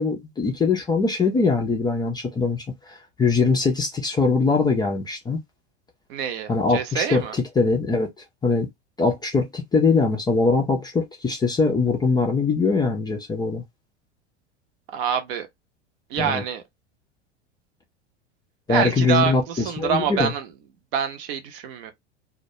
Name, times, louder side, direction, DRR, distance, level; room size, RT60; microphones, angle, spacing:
voice 1, 0.0-5.4 6.5-8.1 8.4-8.7 9.0-13.6 16.2-16.4 18.7-20.3, left 4 dB, 10° left, 0.4 m, -22 dB
voice 2, 6.1-7.4 14.9-15.5 16.1-16.6 18.7-20.5 20.9-21.9, right 8 dB, 50° right, 0.7 m, -26 dB
2.2 x 2.2 x 2.7 m
figure-of-eight pair, 85°, 35 cm